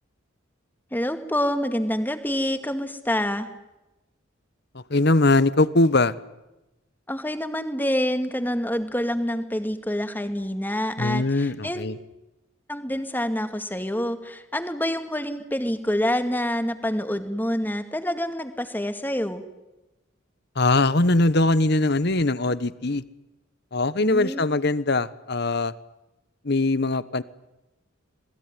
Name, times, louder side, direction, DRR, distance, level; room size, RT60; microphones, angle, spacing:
voice 1, 0.9-3.5 7.1-11.8 12.7-19.4 24.0-24.5, equal, 10° left, 9 dB, 2.2 m, -27 dB
voice 2, 4.7-6.1 11.0-12.0 20.5-23.0 23.7-25.7 26.4-27.2, left 2 dB, 55° left, 17 dB, 1.2 m, -21 dB
27.5 x 20.5 x 10.0 m, 0.99 s
head